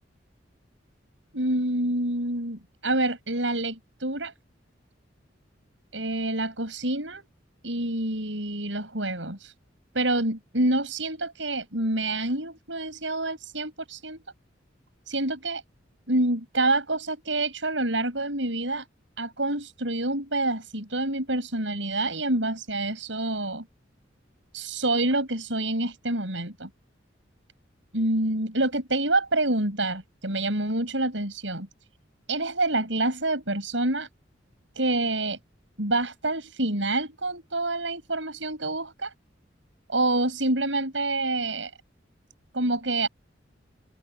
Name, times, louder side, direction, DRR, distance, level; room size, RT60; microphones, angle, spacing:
voice 1, 1.3-4.3 5.9-7.3 7.6-9.5 9.9-14.2 15.1-15.6 16.1-18.8 19.2-23.6 24.5-26.7 27.9-31.7 32.3-34.1 34.8-35.4 35.8-39.1 39.9-41.7 42.5-43.1, right 2 dB, 80° right, 7.4 m, -27 dB
head